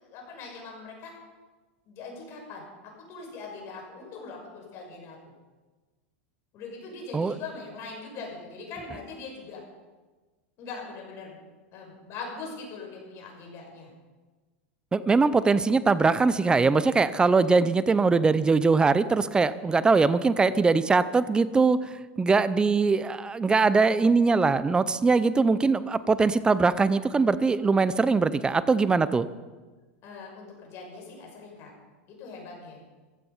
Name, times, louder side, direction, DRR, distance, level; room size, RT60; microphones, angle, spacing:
voice 1, 0.0-1.1 1.9-2.6 3.1-5.2 6.5-9.6 10.6-11.4 11.7-13.9 30.0-31.7 32.1-32.8, left 4 dB, 45° left, 0 dB, 6.1 m, -41 dB
voice 2, 14.9-29.3, right 4 dB, 15° right, 15 dB, 0.6 m, -22 dB
15.5 x 12.5 x 5.7 m, 1.3 s
supercardioid pair, 125°, 7 cm